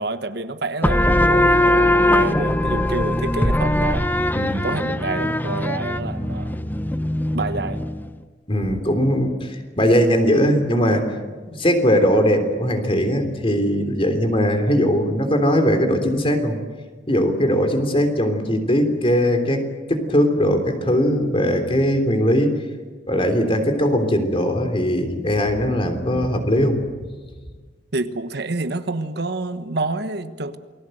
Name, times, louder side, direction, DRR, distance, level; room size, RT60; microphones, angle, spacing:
voice 1, 0.0-4.1 4.6-6.6 7.3-7.8 27.9-30.6, right 2 dB, 65° right, 10 dB, 1.3 m, -28 dB
sound 1, 0.8-8.1, left 1 dB, 10° left, 0.8 m, -20 dB
voice 2, 4.3-4.7 8.5-11.1 11.4-16.6 17.1-19.6 19.9-22.6 23.1-26.8, equal, 30° left, 6 dB, 3.4 m, -20 dB
28.5 x 20.5 x 7.9 m, 1.4 s
head